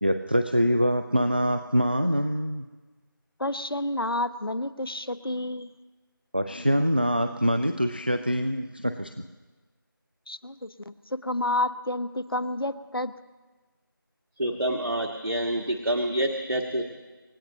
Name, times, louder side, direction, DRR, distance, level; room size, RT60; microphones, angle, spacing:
voice 1, 0.0-2.6 6.3-9.1, equal, 25° right, 9 dB, 0.4 m, -24 dB
voice 2, 3.4-5.7 10.3-10.9 11.2-13.1, left 1 dB, 85° left, 13 dB, 1.0 m, -30 dB
voice 3, 14.4-16.8, right 1 dB, 85° right, 2 dB, 1.7 m, -27 dB
28.0 x 15.0 x 3.0 m, 1.3 s
figure-of-eight pair, 170°, 12 cm